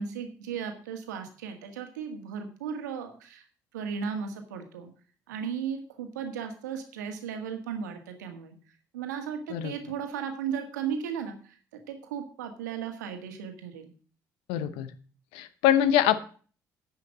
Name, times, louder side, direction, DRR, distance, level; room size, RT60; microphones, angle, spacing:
voice 1, 0.0-3.4 3.7-4.9 5.3-8.5 8.9-11.4 11.9-13.9, right 7 dB, 85° right, 5 dB, 1.7 m, -35 dB
voice 2, 14.5-14.9 15.3-16.2, left 11 dB, 75° left, 14 dB, 0.9 m, -23 dB
10.5 x 5.7 x 7.4 m, 0.42 s
hypercardioid pair, 50°, 9 cm